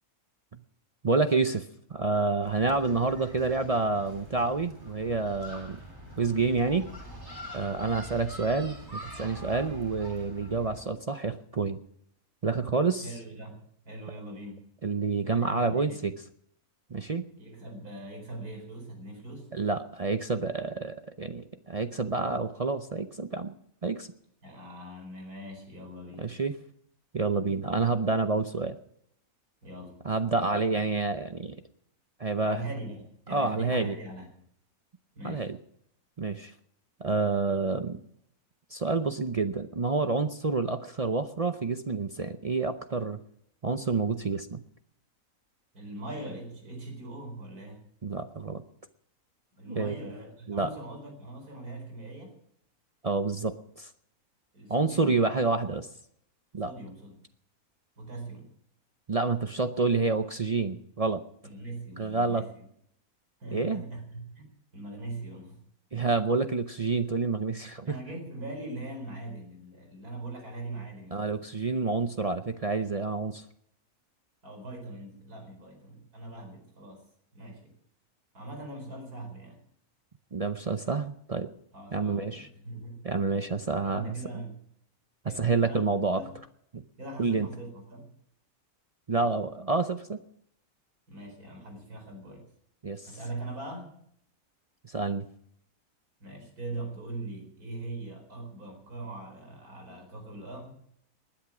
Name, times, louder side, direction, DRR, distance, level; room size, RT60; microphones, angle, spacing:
voice 1, 1.0-5.8 6.2-6.9 7.5-11.8 12.4-13.1 14.8-16.1 16.9-17.3 19.5-23.5 23.8-24.1 26.2-26.6 27.1-28.8 30.0-31.6 32.2-32.7 33.3-34.0 35.2-35.6 36.2-36.5 37.0-38.0 38.7-43.2 43.6-44.6 48.0-48.6 49.7-49.9 50.5-50.7 53.0-53.9 54.7-55.9 56.5-56.7 59.1-61.2 62.0-62.4 63.5-63.8 65.9-68.0 71.1-73.4 80.3-81.5 81.9-82.5 83.0-84.4 85.2-86.2 86.7-86.8 87.2-87.5 89.1-90.2 92.8-93.1 94.8-95.3, right 4 dB, 45° right, 8 dB, 0.5 m, -28 dB
sound 1, 2.4-10.8, equal, 15° right, 3.5 m, -44 dB
voice 2, 13.0-14.6 15.2-16.1 17.4-19.5 24.4-26.3 29.6-30.0 32.4-34.3 35.1-35.5 45.7-47.8 49.6-52.4 54.5-55.2 56.6-57.2 58.0-58.5 61.4-62.6 63.4-65.6 67.8-71.4 74.4-77.1 77.3-77.7 78.3-79.6 81.7-83.0 83.8-84.6 85.3-85.8 86.1-86.3 87.0-88.1 91.1-92.4 93.1-93.9 96.2-100.8, right 2 dB, 85° right, 4 dB, 4.9 m, -41 dB
20.0 x 10.0 x 6.1 m, 0.70 s
omnidirectional pair, 1.6 m